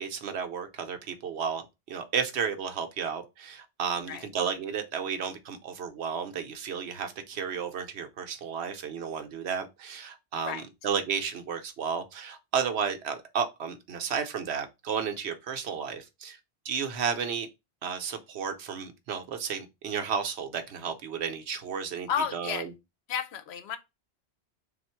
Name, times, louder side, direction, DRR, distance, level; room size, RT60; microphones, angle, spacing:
voice 1, 0.0-1.6 1.9-16.4 16.6-17.5 17.8-22.6, right 6 dB, 75° right, 0.9 m, -33 dB
voice 2, 22.1-22.7 23.1-23.8, left 7 dB, 75° left, 0.8 m, -32 dB
3.5 x 2.4 x 4.3 m
omnidirectional pair, 1.1 m